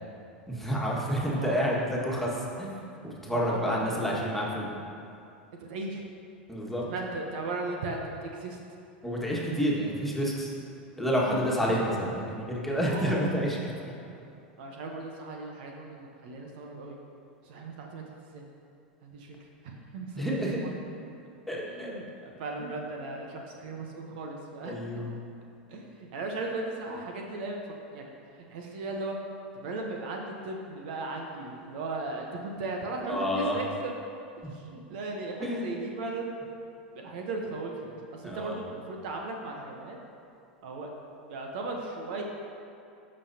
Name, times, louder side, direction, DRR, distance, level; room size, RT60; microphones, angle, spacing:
voice 1, 0.5-2.8 3.0-4.8 6.5-6.8 9.0-10.5 11.0-13.6 20.1-20.6 21.5-21.9 22.6-22.7 24.6-25.2 33.1-33.6 35.4-35.8 38.2-38.6, equal, 5° left, -5 dB, 1.7 m, -29 dB
voice 2, 3.3-4.2 5.6-6.0 6.8-8.6 11.3-11.4 11.6-11.7 12.9-13.2 14.0-14.1 14.6-17.0 17.4-18.4 19.0-19.4 19.6-20.7 21.5-24.8 25.7-27.6 27.9-28.1 28.4-29.2 29.5-33.9 34.4-36.3 37.0-40.0 40.6-40.9 41.3-42.2, right 3 dB, 60° right, 1 dB, 1.0 m, -37 dB
13.5 x 5.4 x 2.8 m, 2.6 s
hypercardioid pair, 90°, 6 cm